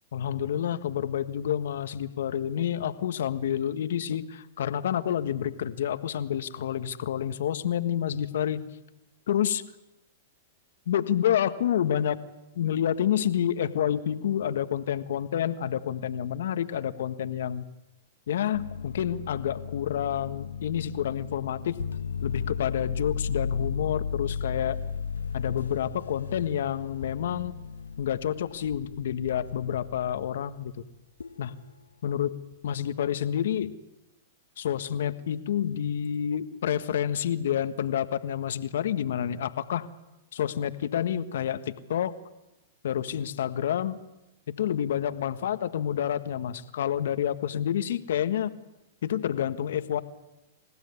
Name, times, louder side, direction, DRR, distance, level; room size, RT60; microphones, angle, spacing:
voice 1, 0.1-8.6 9.3-9.6 10.9-12.2 12.5-17.6 18.3-21.8 22.2-24.8 25.3-27.5 28.0-30.7 31.4-31.5 32.0-32.3 32.6-33.7 34.6-39.9 40.3-42.1 42.8-44.0 44.5-48.5 49.0-50.0, left 10 dB, 70° left, 11 dB, 1.5 m, -28 dB
sound 1, 18.5-30.3 31.2-31.5, left 6 dB, 90° left, 1.0 m, -35 dB
28.5 x 16.0 x 9.7 m, 0.99 s
hypercardioid pair, 115°, 0 cm